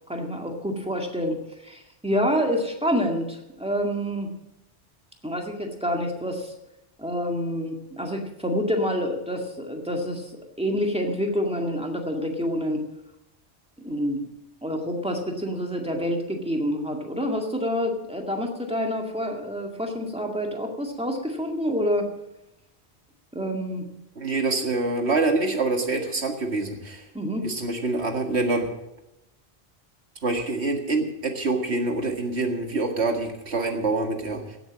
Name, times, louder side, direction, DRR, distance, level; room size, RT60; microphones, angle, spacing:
voice 1, 0.1-4.3 5.2-6.5 7.0-10.3 10.6-12.8 13.8-14.2 14.6-22.1 23.3-23.9 27.1-27.5, equal, 5° right, 2 dB, 2.0 m, -27 dB
voice 2, 24.2-27.1 27.4-28.7 30.2-34.6, right 3 dB, 80° right, 4 dB, 2.1 m, -26 dB
16.5 x 8.1 x 7.4 m, 0.89 s
omnidirectional pair, 1.1 m